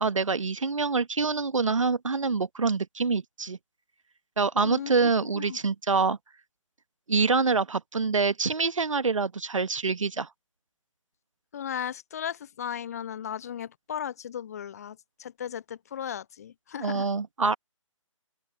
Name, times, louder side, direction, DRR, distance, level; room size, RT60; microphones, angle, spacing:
voice 1, 0.0-3.6 4.4-6.2 7.1-10.3 16.8-17.6, right 4 dB, 70° right, 1.3 m, -26 dB
voice 2, 5.2-5.6 11.5-17.1, left 9 dB, 30° left, 0.5 m, -36 dB
open air
figure-of-eight pair, 145°, 17 cm